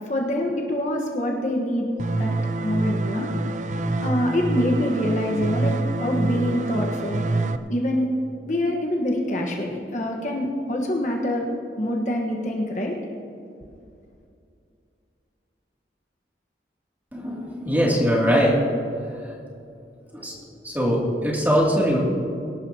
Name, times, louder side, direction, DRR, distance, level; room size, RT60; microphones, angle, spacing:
voice 1, 0.1-2.3 2.6-3.3 4.0-7.2 7.7-8.1 8.5-11.5 11.8-12.9, left 1 dB, 45° left, 0 dB, 1.4 m, -25 dB
sound 1, 2.0-7.6, right 2 dB, 40° right, 0.5 m, -26 dB
voice 2, 17.1-18.6 20.1-20.3 20.6-22.0, equal, 10° right, -4 dB, 2.7 m, -21 dB
23.5 x 12.0 x 2.9 m, 2.5 s
head